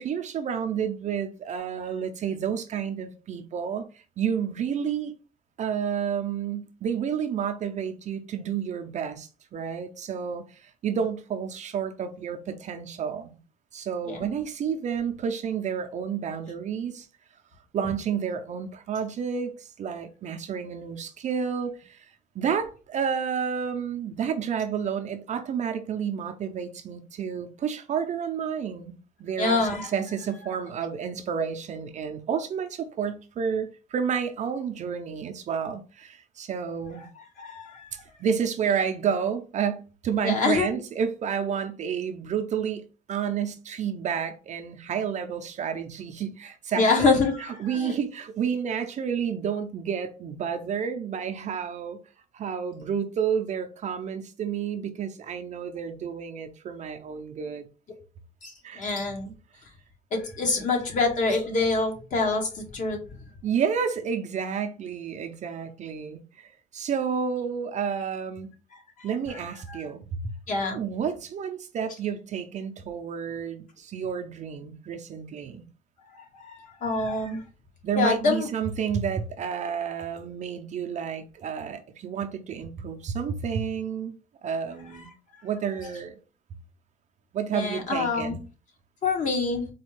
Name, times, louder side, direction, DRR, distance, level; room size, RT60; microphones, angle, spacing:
voice 1, 0.0-5.1 5.6-13.4 13.7-17.1 17.7-22.1 22.3-29.6 29.9-37.1 37.9-47.2 47.6-52.0 52.3-57.7 58.6-58.8 63.4-68.5 69.0-70.3 70.7-75.7 77.8-84.2 84.4-85.1 85.4-86.2 87.3-88.4, right 7 dB, 45° right, 0.5 m, -30 dB
voice 2, 29.4-29.9 37.4-38.0 40.2-40.8 46.8-48.0 58.4-59.3 60.1-63.0 69.7-69.8 70.5-70.8 76.3-77.4 78.0-78.5 87.5-88.4 89.0-89.7, left 3 dB, 50° left, 1.2 m, -26 dB
4.2 x 2.3 x 3.1 m
cardioid pair, 110°, 17 cm